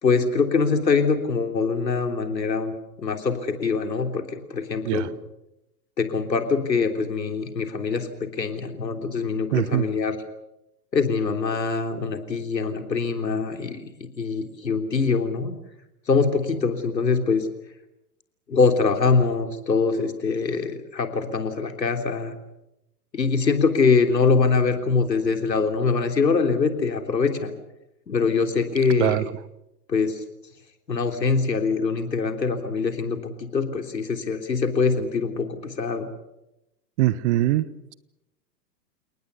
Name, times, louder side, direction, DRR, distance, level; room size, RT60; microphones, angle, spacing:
voice 1, 0.0-5.1 6.0-10.2 10.9-13.8 14.2-15.5 16.1-17.5 18.5-22.3 23.1-27.5 28.1-29.2 29.9-30.2 30.9-36.1, left 4 dB, 85° left, 6 dB, 3.5 m, -23 dB
voice 2, 9.5-9.9 29.0-29.2 37.0-37.7, right 15 dB, 45° right, 18 dB, 1.3 m, -22 dB
30.0 x 19.0 x 6.9 m, 0.88 s
hypercardioid pair, 115°, 49 cm